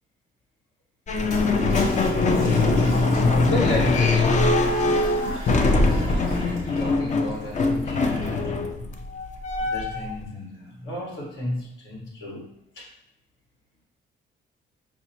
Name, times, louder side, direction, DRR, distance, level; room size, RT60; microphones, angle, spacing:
sound 1, 1.1-10.2, left 3 dB, 40° left, 0.4 m, -22 dB
Toilet flush, 1.3-8.5, left 1 dB, 90° left, 1.3 m, -37 dB
voice 1, 2.1-2.5 3.5-4.4 5.5-9.0 9.6-12.5 12.7-12.9, left 1 dB, 70° left, -3 dB, 1.4 m, -32 dB
5.9 x 2.1 x 2.8 m, 0.83 s
cardioid pair, 90°, 20 cm